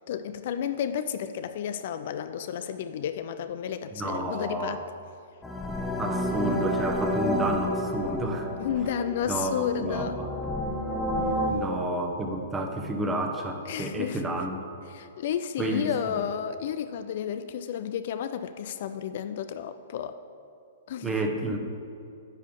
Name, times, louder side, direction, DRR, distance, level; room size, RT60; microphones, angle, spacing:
voice 1, 0.1-4.8 8.6-10.2 13.7-14.3 14.9-20.2 20.9-21.2, left 9 dB, 55° left, 10 dB, 0.4 m, -32 dB
voice 2, 3.9-4.8 6.0-8.5 9.3-9.6 9.8-10.3 11.5-14.7 15.6-16.2 21.0-21.6, right 1 dB, 15° right, 3 dB, 1.0 m, -30 dB
sound 1, 5.4-11.5, equal, 10° left, 1.0 m, -30 dB
9.8 x 3.7 x 7.1 m, 2.4 s
hypercardioid pair, 120°, 0 cm